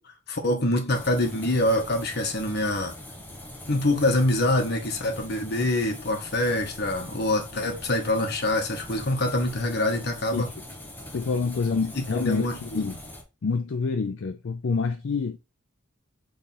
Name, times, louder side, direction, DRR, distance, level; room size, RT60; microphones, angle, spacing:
voice 1, 0.3-2.9 3.7-10.5 12.0-12.8, left 1 dB, 50° left, 1.1 m, -25 dB
sound 1, 0.9-13.2, left 1 dB, 10° left, 0.8 m, -42 dB
voice 2, 11.1-13.0 13.4-15.4, left 4 dB, 65° left, 0.5 m, -27 dB
3.6 x 3.4 x 4.2 m
head